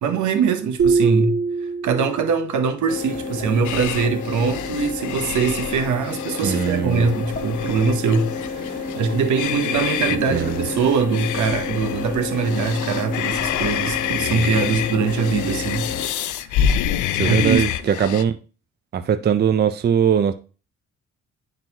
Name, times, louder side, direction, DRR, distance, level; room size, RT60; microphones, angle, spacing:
voice 1, 0.0-1.4 1.8-16.5 17.2-17.6, right 5 dB, 75° right, 1.0 m, -22 dB
sound 1, 0.8-2.5, right 4 dB, 50° right, 2.1 m, -22 dB
sound 2, 2.9-16.1, left 4 dB, 30° left, 1.5 m, -30 dB
sound 3, 3.6-18.2, left 10 dB, 75° left, 0.5 m, -28 dB
voice 2, 6.4-7.1 10.3-10.6 17.1-18.4 18.9-20.3, right 8 dB, 35° right, 0.5 m, -20 dB
10.5 x 3.9 x 2.9 m
cardioid pair, 90°, 30 cm